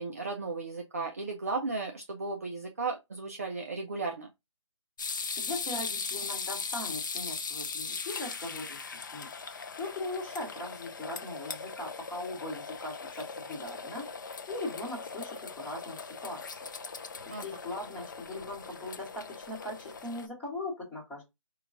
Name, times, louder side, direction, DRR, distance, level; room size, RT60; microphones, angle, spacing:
voice 1, 0.0-4.3 17.3-17.4, right 3 dB, 30° right, 0.3 m, -35 dB
sound 1, 5.0-20.3, left 5 dB, 35° left, 0.4 m, -39 dB
voice 2, 5.4-8.8 9.1-14.0 14.5-21.3, left 2 dB, 5° left, 1.2 m, -40 dB
3.7 x 2.3 x 3.8 m
figure-of-eight pair, 160°, 17 cm